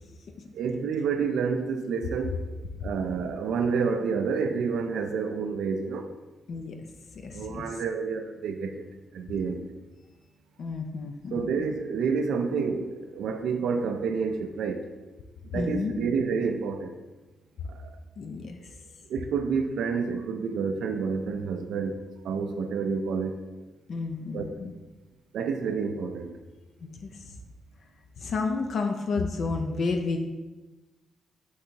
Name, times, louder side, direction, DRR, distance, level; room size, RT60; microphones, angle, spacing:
voice 1, 0.5-2.5 2.8-6.1 7.3-8.9 9.1-9.7 11.3-14.9 15.5-17.0 17.7-18.0 19.1-23.5 24.3-24.6 25.3-26.4, right 5 dB, 80° right, 6 dB, 0.3 m, -29 dB
voice 2, 7.1-7.7 10.6-11.4 15.5-15.9 18.2-18.6 23.9-24.7 26.8-27.4 28.2-30.3, left 4 dB, 65° left, 4 dB, 0.4 m, -31 dB
4.6 x 2.7 x 4.3 m, 1.2 s
cardioid pair, 70°, 0 cm